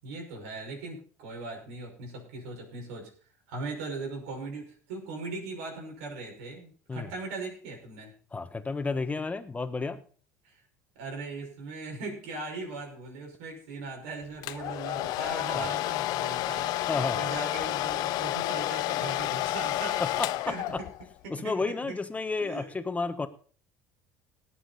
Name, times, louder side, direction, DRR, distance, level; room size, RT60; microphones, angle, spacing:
voice 1, 0.0-3.1 3.5-8.1 10.4-10.6 11.0-20.9 21.2-22.0 22.4-22.7, right 3 dB, 75° right, 1 dB, 5.9 m, -39 dB
voice 2, 8.3-10.0 15.5-15.7 16.9-17.3 20.0-20.3 20.7-20.8 21.3-23.3, left 4 dB, 20° left, 10 dB, 1.5 m, -31 dB
Domestic sounds home sounds, 14.4-21.1, left 16 dB, 65° left, 0.6 m, -30 dB
19.0 x 7.8 x 4.2 m, 0.42 s
hypercardioid pair, 75°, 7 cm